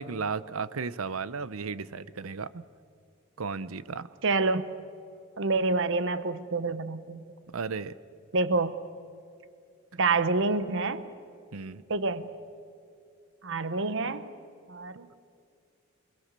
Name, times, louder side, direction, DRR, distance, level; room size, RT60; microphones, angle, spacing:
voice 1, 0.0-2.6 3.4-4.1 7.5-7.9 11.5-11.8, right 5 dB, 90° right, 17 dB, 0.7 m, -34 dB
voice 2, 4.2-4.6 5.4-7.2 8.3-8.7 10.0-11.0 11.9-12.3 13.4-14.3 14.7-15.1, right 3 dB, 65° right, 13 dB, 1.1 m, -27 dB
27.5 x 21.5 x 6.8 m, 2.4 s
head